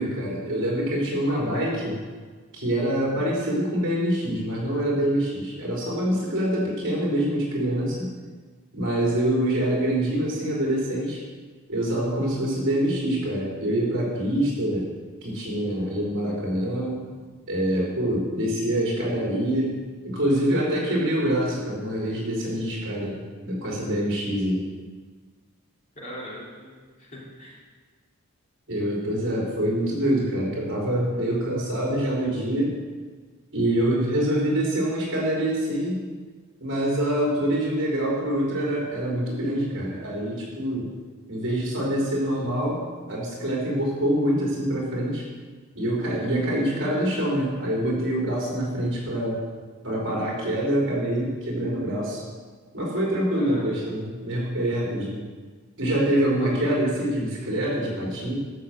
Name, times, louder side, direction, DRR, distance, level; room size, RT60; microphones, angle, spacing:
voice 1, 0.0-2.0 2.5-8.1 8.7-11.2 11.7-14.9 15.2-17.0 17.5-19.7 20.0-24.6 28.7-32.7 33.5-36.0 36.6-40.9 41.3-45.2 45.7-49.4 49.8-52.2 52.7-55.2 55.8-58.3, right 1 dB, 55° right, -4 dB, 4.3 m, -25 dB
voice 2, 25.9-27.6 53.4-54.0 56.4-56.6, equal, 35° left, -5 dB, 3.3 m, -41 dB
12.5 x 6.7 x 7.7 m, 1.5 s
head